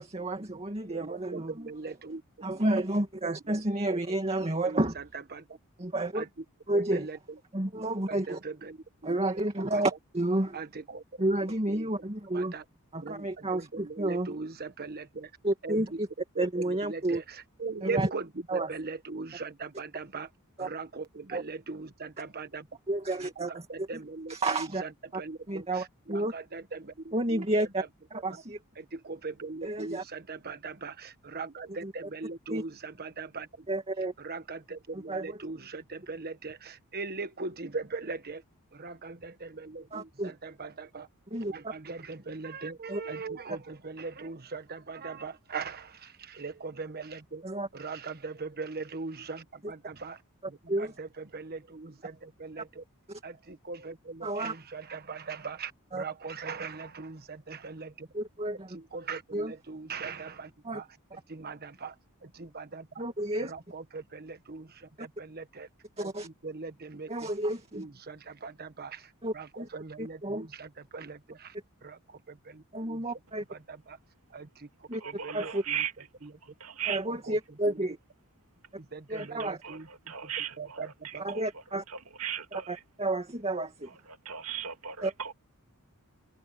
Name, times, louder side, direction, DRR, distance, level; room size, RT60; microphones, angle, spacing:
voice 1, 0.0-1.7 2.4-5.0 5.8-6.2 6.7-7.1 7.5-8.4 9.0-10.6 11.2-12.5 12.9-14.3 15.4-16.1 16.4-17.2 17.8-18.1 18.5-18.7 20.6-20.7 21.3-21.4 22.9-23.9 24.3-24.8 25.1-25.2 25.5-26.3 27.1-27.8 28.1-28.6 29.6-30.0 31.8-31.9 32.5-32.6 33.7-34.1 34.9-35.4 39.9-40.3 41.3-41.7 42.9-43.0 47.4-47.7 49.6-49.7 50.7-50.9 53.1-53.2 54.2-54.5 55.9-56.0 58.1-58.8 59.3-59.5 60.6-60.8 63.0-63.5 65.0-65.1 66.0-66.3 67.1-67.8 69.2-69.7 70.0-70.5 72.7-73.4 74.9-75.0 75.3-75.6 76.9-78.0 79.1-79.6 81.2-81.8 82.5-83.9 85.0-85.1, right 1 dB, 30° right, 2.3 m, -31 dB
voice 2, 0.9-2.2 3.5-3.6 3.9-4.0 4.6-5.0 5.3-5.4 6.1-6.3 6.7-7.2 8.1-8.8 9.0-9.2 9.7-9.8 10.5-11.0 11.7-11.9 12.3-12.6 13.0-15.3 15.6-16.0 16.3-20.3 20.6-22.7 23.2-27.4 27.8-27.9 28.1-28.4 28.8-33.7 34.2-38.4 38.7-41.1 41.4-47.4 47.7-50.2 50.5-52.8 53.2-58.1 58.7-60.9 61.3-61.9 62.2-62.9 63.5-65.7 66.0-67.3 67.7-71.5 71.8-73.0 73.5-74.0 74.3-75.8 76.2-76.3 77.2-77.4 77.7-77.9 78.8-79.9 80.2-81.3, right 4 dB, 45° right, 1.4 m, -40 dB
voice 3, 75.0-75.9 76.6-77.0 79.2-79.8 80.1-81.4 82.2-82.7 84.3-85.3, right 9 dB, 70° right, 2.6 m, -36 dB
head